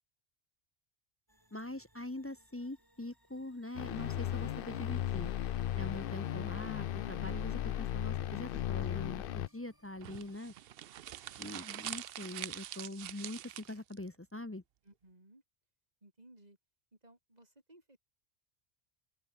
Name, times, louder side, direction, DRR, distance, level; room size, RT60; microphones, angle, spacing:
sound 1, 1.3-10.4, equal, 20° right, 7.2 m, -69 dB
voice 1, 1.5-5.3 5.7-10.5 11.4-14.6, left 1 dB, 15° left, 0.6 m, -43 dB
sound 2, 3.7-9.5, left 11 dB, 65° left, 0.8 m, -36 dB
sound 3, 10.0-14.0, right 12 dB, 70° right, 0.8 m, -44 dB
voice 2, 14.8-15.4 16.0-16.6 16.9-18.0, right 1 dB, 40° right, 5.7 m, -60 dB
open air
omnidirectional pair, 1.0 m